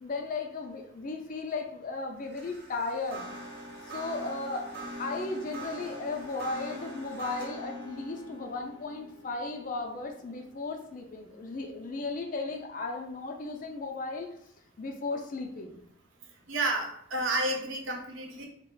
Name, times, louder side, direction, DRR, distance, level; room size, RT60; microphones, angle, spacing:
voice 1, 0.0-3.3 3.9-4.7 5.0-14.3 14.8-15.8, left 3 dB, 40° left, 3 dB, 0.4 m, -35 dB
sound 1, 2.2-11.5, equal, 50° right, 0.9 m, -43 dB
voice 2, 16.5-18.5, right 2 dB, 75° right, 2 dB, 0.6 m, -30 dB
2.3 x 2.0 x 3.8 m, 0.68 s
head